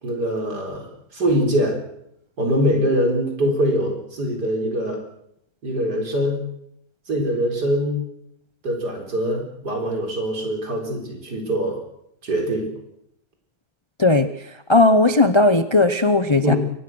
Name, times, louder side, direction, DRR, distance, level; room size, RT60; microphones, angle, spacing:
voice 1, 0.0-1.8 2.4-5.0 5.6-6.4 7.1-8.0 8.6-11.8 12.2-12.7 16.4-16.6, equal, 65° right, 3 dB, 4.7 m, -23 dB
voice 2, 14.0-14.3 14.7-16.5, left 2 dB, 30° left, 11 dB, 0.5 m, -16 dB
23.0 x 19.0 x 6.2 m, 0.74 s
omnidirectional pair, 1.9 m